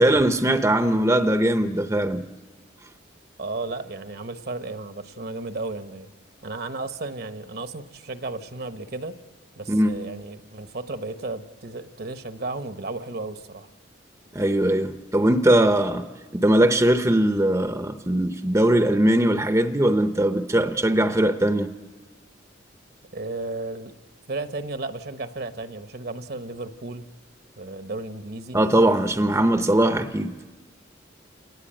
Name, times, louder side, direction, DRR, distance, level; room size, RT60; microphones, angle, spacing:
voice 1, 0.0-2.2 9.7-10.0 14.3-16.1 16.3-21.7 28.5-30.3, right 1 dB, 15° right, 0.7 m, -20 dB
voice 2, 3.4-6.1 6.4-9.2 9.6-13.7 23.1-23.9 24.3-27.1 27.6-28.6, right 2 dB, 50° right, 1.0 m, -34 dB
28.5 x 19.0 x 8.8 m
head